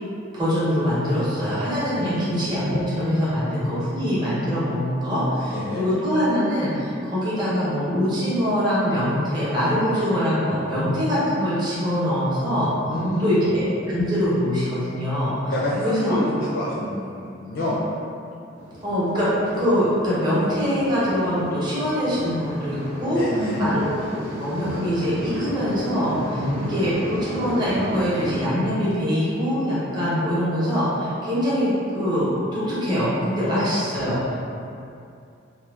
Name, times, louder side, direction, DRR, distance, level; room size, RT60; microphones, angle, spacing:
voice 1, 0.3-12.7 13.2-15.5 15.8-16.2 18.8-24.0 24.4-34.4, equal, 20° right, -10 dB, 0.7 m, -23 dB
voice 2, 1.9-2.4 5.4-5.9 12.9-13.5 15.5-17.8 23.1-23.7 26.3-26.8 33.4-33.7, left 1 dB, 70° left, -7 dB, 0.4 m, -27 dB
sound 1, 18.6-28.5, equal, 70° right, 0.6 m, -35 dB
2.8 x 2.0 x 2.3 m, 2.5 s
head